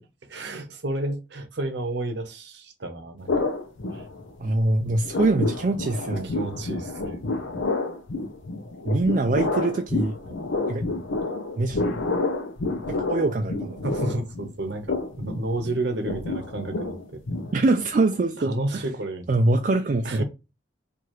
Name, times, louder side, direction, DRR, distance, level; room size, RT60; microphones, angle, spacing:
voice 1, 0.3-3.6 3.9-4.1 5.1-5.2 6.2-7.4 13.8-17.2 18.4-19.6 20.0-20.2, right 2 dB, 65° right, 0.9 m, -31 dB
sound 1, 3.3-4.5 4.8-17.9, left 3 dB, 85° left, 0.7 m, -29 dB
voice 2, 4.4-6.3 8.8-10.2 10.7-10.9 11.6-11.8 12.9-13.8 17.5-18.8 19.3-20.2, right 2 dB, 40° right, 0.3 m, -23 dB
4.6 x 2.6 x 3.0 m
head